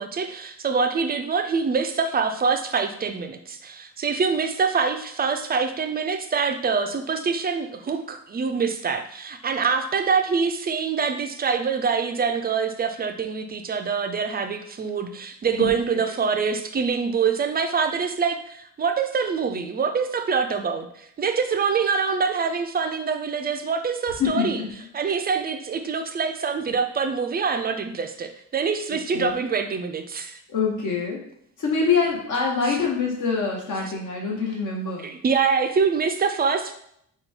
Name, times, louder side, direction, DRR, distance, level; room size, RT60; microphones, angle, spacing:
voice 1, 0.0-24.6 24.9-30.4 35.0-36.7, right 5 dB, 30° right, 6 dB, 0.3 m, -25 dB
voice 2, 24.2-24.7 25.1-25.2 29.1-29.3 30.5-31.2 31.6-35.1, left 5 dB, 65° left, -1 dB, 1.1 m, -25 dB
5.3 x 2.3 x 4.3 m, 0.70 s
wide cardioid pair, 165°, 34 cm